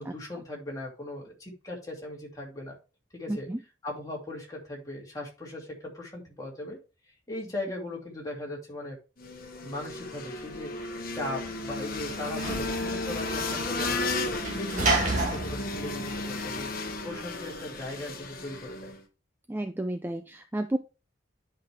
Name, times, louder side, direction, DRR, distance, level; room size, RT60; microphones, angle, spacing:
voice 1, 0.0-2.7 3.1-3.5 3.8-6.8 7.3-9.0 9.6-14.1 14.6-16.7 17.0-18.9, left 1 dB, 15° left, -2 dB, 2.6 m, -38 dB
voice 2, 3.3-3.6 19.5-20.8, right 1 dB, 10° right, 8 dB, 0.3 m, -31 dB
sound 1, 9.2-19.0, left 3 dB, 45° left, 1.2 m, -34 dB
Sliding door / Slam, 11.1-16.9, right 2 dB, 35° right, 1.8 m, -32 dB
10.0 x 5.3 x 3.4 m, 0.30 s
head